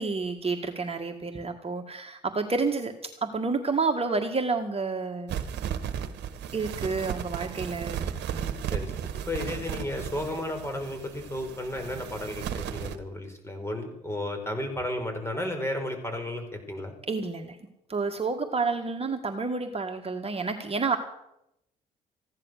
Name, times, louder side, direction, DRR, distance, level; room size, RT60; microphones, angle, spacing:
voice 1, 0.0-2.9 3.2-5.4 6.5-8.5 17.1-17.6 17.9-21.0, right 4 dB, 35° right, 4 dB, 1.8 m, -29 dB
sound 1, 5.3-13.0, right 9 dB, 70° right, 1.3 m, -35 dB
voice 2, 8.7-16.9, left 1 dB, 15° left, 5 dB, 5.2 m, -33 dB
15.5 x 10.5 x 6.6 m, 0.82 s
hypercardioid pair, 50°, 18 cm